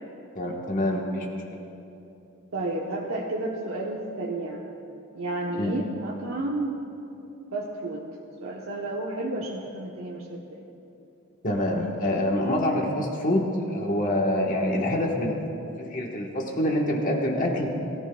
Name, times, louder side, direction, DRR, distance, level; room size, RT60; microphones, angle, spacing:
voice 1, 0.3-1.3 5.6-5.7 11.4-15.4 15.8-17.7, left 1 dB, 40° left, 0 dB, 1.3 m, -26 dB
voice 2, 2.5-4.7 5.1-6.8 7.5-8.0 8.4-10.6, right 2 dB, 75° right, -2 dB, 1.0 m, -31 dB
21.5 x 14.0 x 2.3 m, 2.9 s
head